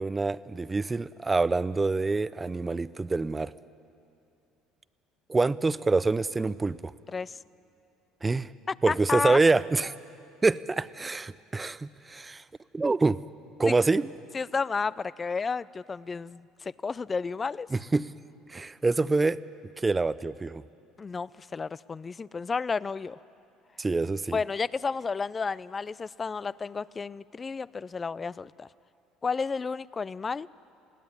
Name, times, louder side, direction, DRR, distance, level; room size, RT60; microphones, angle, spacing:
voice 1, 0.0-3.5 5.3-6.9 8.2-8.5 8.8-9.9 10.4-12.4 12.7-13.2 13.6-14.1 17.7-18.1 18.5-19.4 19.8-20.6 23.8-24.4, right 3 dB, 20° right, 17 dB, 0.6 m, -26 dB
voice 2, 8.7-9.4 13.7-13.8 14.3-17.7 21.0-23.2 24.3-28.7 29.2-30.5, left 5 dB, 30° left, 20 dB, 0.4 m, -32 dB
21.0 x 16.0 x 9.6 m, 2.6 s
supercardioid pair, 85°, 0 cm